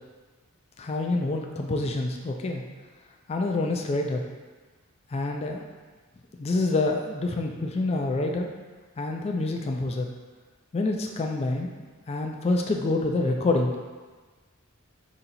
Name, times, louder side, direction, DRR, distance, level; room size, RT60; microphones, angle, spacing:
voice 1, 0.8-2.6 3.3-4.2 5.1-5.7 6.4-8.5 9.0-10.1 10.7-11.7 12.1-13.7, left 2 dB, 30° left, 2 dB, 0.3 m, -27 dB
3.9 x 2.8 x 4.2 m, 1.4 s
head